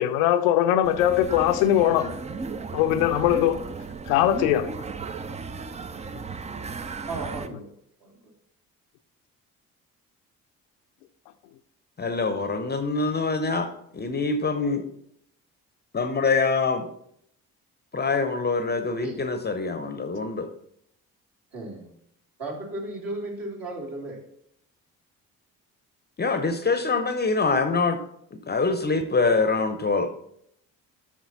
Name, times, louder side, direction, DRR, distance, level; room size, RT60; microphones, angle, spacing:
voice 1, 0.0-2.2 2.7-3.6 4.1-4.7, left 11 dB, 65° left, 0.6 m, -21 dB
sound 1, 0.8-7.5, right 4 dB, 15° right, 0.4 m, -35 dB
voice 2, 7.1-7.7 8.0-8.3 19.0-19.1 21.5-21.9 22.4-24.2, right 2 dB, 50° right, 2.7 m, -35 dB
voice 3, 12.0-13.7 13.9-14.8 15.9-16.9 17.9-20.5 26.2-28.0 28.5-30.1, left 4 dB, 25° left, 0.7 m, -24 dB
8.1 x 6.2 x 4.1 m
figure-of-eight pair, 45°, 43 cm